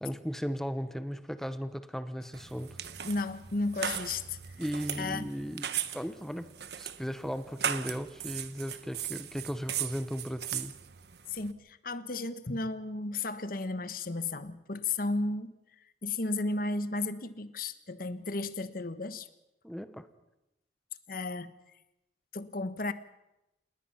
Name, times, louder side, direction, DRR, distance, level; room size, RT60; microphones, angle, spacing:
voice 1, 0.0-2.8 4.6-5.7 5.9-10.7 19.6-20.1, equal, ahead, 11 dB, 1.1 m, -36 dB
sound 1, 2.3-11.5, right 9 dB, 65° right, 1.2 m, -38 dB
voice 2, 3.0-4.4 5.0-5.3 11.3-19.3 21.1-21.5 22.3-22.9, left 3 dB, 55° left, 12 dB, 1.2 m, -34 dB
29.0 x 19.5 x 5.8 m, 0.91 s
head